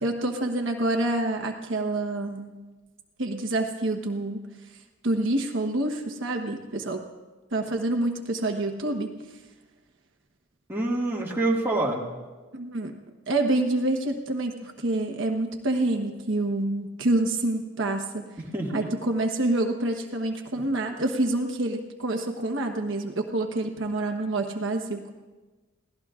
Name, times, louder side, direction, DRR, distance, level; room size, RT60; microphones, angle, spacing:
voice 1, 0.0-2.6 3.2-4.5 5.0-7.0 7.5-9.1 12.5-13.0 13.3-18.3 18.7-25.1, right 2 dB, 65° right, 3 dB, 1.2 m, -27 dB
voice 2, 10.7-12.0 18.5-18.9, right 2 dB, 10° right, -3 dB, 1.9 m, -26 dB
27.0 x 17.5 x 2.5 m, 1.2 s
head